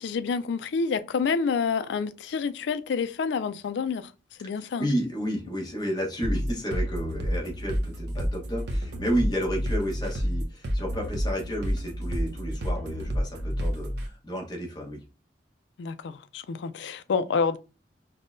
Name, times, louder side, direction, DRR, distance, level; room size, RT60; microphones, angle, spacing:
voice 1, 0.0-4.1 4.4-4.9 15.8-17.6, left 5 dB, 65° left, 0.3 m, -28 dB
voice 2, 4.6-15.0, equal, 25° left, 1.1 m, -31 dB
sound 1, 6.2-14.1, equal, 65° right, 0.6 m, -30 dB
5.3 x 2.1 x 2.6 m
head